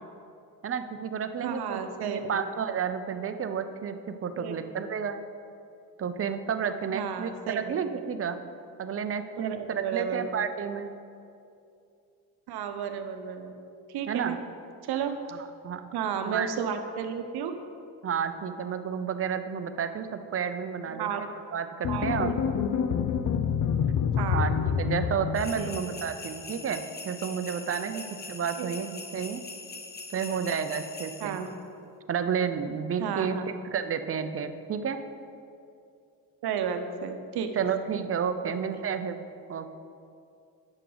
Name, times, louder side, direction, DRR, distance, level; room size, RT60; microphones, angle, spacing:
voice 1, 0.6-5.2 6.0-8.4 8.8-10.9 14.1-14.4 15.3-15.8 16.2-16.5 18.0-21.3 21.5-22.3 24.2-28.0 28.3-29.4 30.1-31.4 32.1-33.4 33.7-35.0 37.6-39.2 39.5-39.7, right 7 dB, 35° right, 9 dB, 0.6 m, -31 dB
voice 2, 1.4-2.2 4.4-4.6 6.9-7.8 9.4-10.2 12.5-13.5 13.9-14.4 14.9-15.2 15.9-17.6 21.0-21.2 21.9-22.3 24.2-24.5 25.5-26.0 28.6-28.7 30.3-30.4 31.2-31.5 33.0-33.5 36.4-37.5 38.4-38.5, right 7 dB, 65° right, 7 dB, 0.9 m, -32 dB
sound 1, 21.8-26.1, left 7 dB, 50° left, 0.6 m, -27 dB
sound 2, 25.3-31.5, left 3 dB, 25° left, 0.8 m, -42 dB
9.7 x 6.5 x 3.9 m, 2.5 s
supercardioid pair, 80°, 41 cm